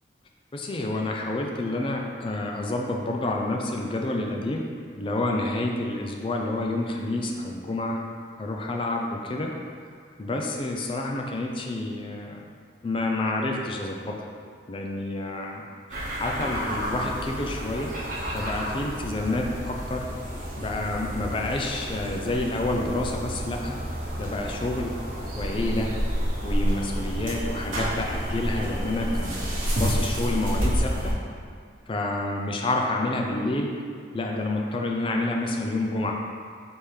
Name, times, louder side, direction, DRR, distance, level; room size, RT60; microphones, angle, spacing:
voice 1, 0.5-4.6 5.0-8.0 8.4-9.5 10.2-12.4 12.8-14.2 14.7-15.6 16.2-17.9 18.3-20.1 20.6-23.8 24.2-24.9 25.4-25.9 26.4-31.2 31.9-33.8 34.1-36.2, left 2 dB, 30° left, 1 dB, 0.3 m, -29 dB
sound 1, 15.9-31.1, equal, 45° right, 0.8 m, -30 dB
4.3 x 3.5 x 3.2 m, 2.2 s
head